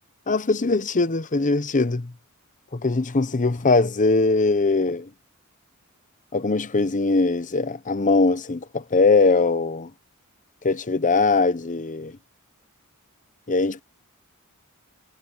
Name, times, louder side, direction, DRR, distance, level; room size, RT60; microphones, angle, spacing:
voice 1, 0.3-2.1 2.7-5.1 6.3-9.9 10.6-12.2 13.5-13.8, left 3 dB, 35° left, 0.8 m, -21 dB
head